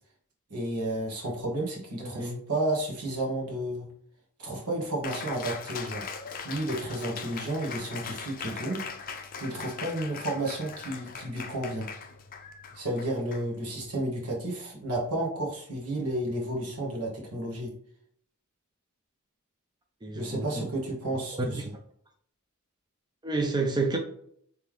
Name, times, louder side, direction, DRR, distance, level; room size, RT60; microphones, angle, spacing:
voice 1, 0.5-3.9 4.4-6.1 6.4-8.8 9.4-11.9 12.7-17.7 20.1-21.7, right 1 dB, 85° right, -1 dB, 1.4 m, -32 dB
voice 2, 2.0-2.4 20.0-20.7 21.3-21.7 23.2-24.0, right 3 dB, 20° right, 2 dB, 0.5 m, -30 dB
Cheering, 5.0-14.0, left 5 dB, 40° left, 0.5 m, -40 dB
3.5 x 3.3 x 3.1 m, 0.64 s
head